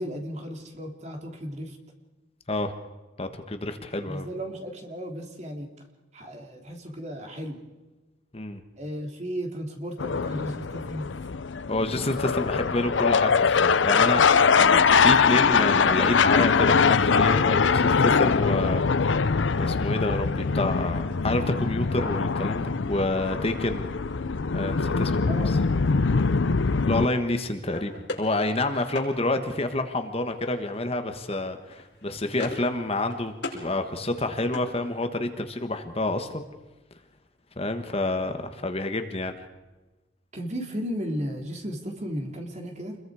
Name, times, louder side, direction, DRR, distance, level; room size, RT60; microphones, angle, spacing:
voice 1, 0.0-1.8 4.0-5.7 6.1-7.6 8.8-11.1 25.3-25.5 40.3-43.0, equal, 40° right, 3 dB, 3.1 m, -34 dB
voice 2, 3.2-4.2 8.3-8.6 11.7-18.8 19.1-19.2 19.6-23.8 24.5-25.6 26.8-36.4 37.6-39.4, left 2 dB, 30° left, 7 dB, 1.4 m, -28 dB
sound 1, 10.0-27.1, left 5 dB, 80° left, 0.6 m, -22 dB
sound 2, 27.7-29.1 30.4-30.8 31.1-31.4 31.7-32.7 33.0-33.6 34.0-35.3, left 2 dB, 65° left, 5.2 m, -39 dB
28.0 x 22.0 x 4.9 m, 1.1 s
head